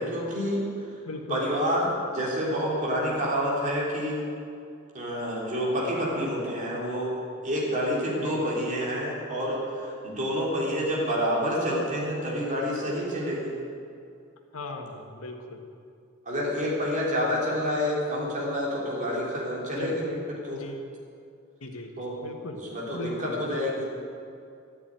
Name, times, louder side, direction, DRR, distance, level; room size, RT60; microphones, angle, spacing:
voice 1, 0.0-0.9 1.3-4.2 4.9-7.1 7.4-13.5 16.3-20.6 22.0-22.2 22.5-23.9, equal, 35° right, -5 dB, 3.6 m, -28 dB
voice 2, 1.0-1.4 8.1-8.5 14.5-15.6 19.7-20.0 20.5-20.8 21.6-21.9 22.2-22.6 22.9-23.6, left 2 dB, 80° left, 3 dB, 1.7 m, -38 dB
13.0 x 10.0 x 9.0 m, 2.5 s
head